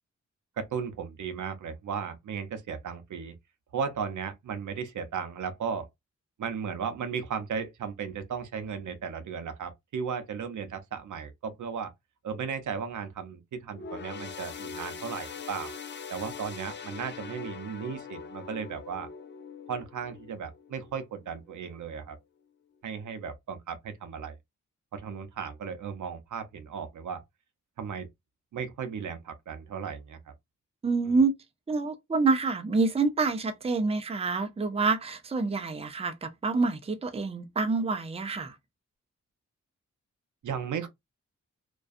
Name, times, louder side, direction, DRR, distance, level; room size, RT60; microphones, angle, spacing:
voice 1, 0.6-3.3 3.7-5.9 6.4-11.9 12.2-15.7 16.1-19.1 19.7-22.2 22.8-24.4 24.9-27.2 27.8-28.1 28.5-30.3 40.4-40.9, right 6 dB, 75° right, 0.6 m, -35 dB
sound 1, 13.7-21.4 21.8-22.0 22.9-23.0, left 6 dB, 40° left, 0.4 m, -42 dB
voice 2, 30.8-31.4 31.7-38.6, right 4 dB, 20° right, 0.5 m, -27 dB
2.4 x 2.2 x 2.5 m
cardioid pair, 65°, 30 cm